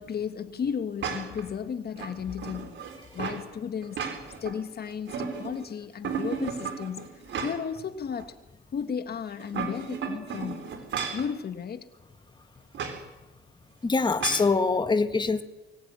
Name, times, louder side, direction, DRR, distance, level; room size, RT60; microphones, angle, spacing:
voice 1, 0.0-2.8 3.1-7.1 7.4-8.3 8.7-10.7 11.1-11.9, left 7 dB, 50° left, 1.6 m, -34 dB
sound 1, 1.0-1.5 2.0-3.4 3.8-4.6 4.9-5.7 6.0-7.8 8.2-8.3 9.3-11.3 12.7-13.0 14.2-14.5, right 6 dB, 70° right, 4.5 m, -34 dB
voice 2, 13.8-15.4, left 4 dB, 20° left, 1.6 m, -24 dB
23.0 x 17.5 x 9.6 m
cardioid pair, 90°, 20 cm